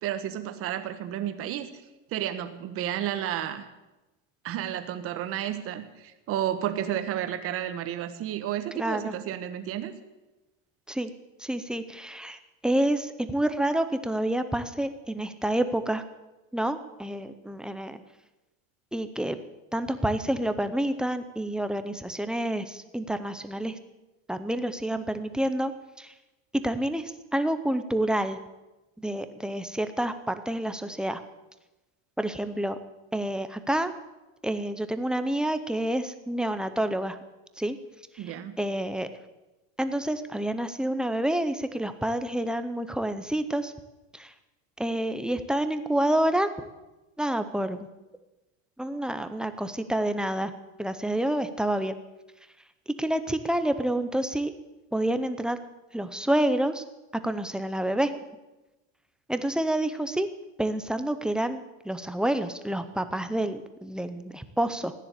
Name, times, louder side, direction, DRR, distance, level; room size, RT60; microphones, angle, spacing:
voice 1, 0.0-1.7 2.1-3.6 4.4-9.9 38.2-38.6, right 11 dB, 40° right, 9 dB, 1.4 m, -31 dB
voice 2, 8.8-9.2 10.9-11.1 11.4-16.0 16.5-18.0 18.9-19.4 19.7-23.7 24.3-25.7 26.0-26.1 26.6-28.4 29.0-31.2 32.2-32.8 33.1-33.9 34.4-37.2 37.6-37.8 38.1-39.1 39.8-43.7 44.1-44.3 44.8-46.5 47.2-47.9 48.8-50.5 50.8-52.0 53.0-54.5 54.9-55.6 55.9-56.8 57.2-58.1 59.3-60.3 60.6-64.9, right 1 dB, ahead, 9 dB, 0.6 m, -28 dB
15.5 x 10.0 x 8.2 m, 1.1 s
supercardioid pair, 150°, 36 cm